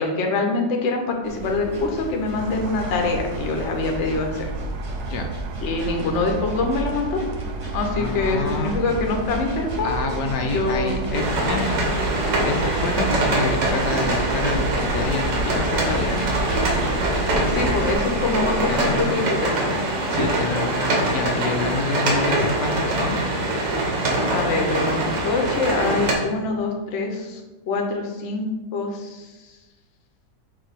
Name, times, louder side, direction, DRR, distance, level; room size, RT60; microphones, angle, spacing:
voice 1, 0.0-4.5 5.6-7.2 7.7-9.9 10.4-11.0 17.5-19.8 24.3-29.6, left 3 dB, 50° left, 2 dB, 1.0 m, -25 dB
sound 1, 1.2-17.9, right 2 dB, 30° right, 0.6 m, -32 dB
sound 2, 2.4-19.0, right 3 dB, 70° right, 0.8 m, -34 dB
voice 2, 8.0-8.8 9.8-11.8 12.1-16.4 18.7-19.2 20.1-23.2, left 3 dB, 75° left, 3 dB, 1.2 m, -28 dB
sound 3, 11.1-26.1, right 1 dB, 85° right, 1.8 m, -23 dB
6.9 x 2.7 x 5.1 m, 1.2 s
omnidirectional pair, 1.9 m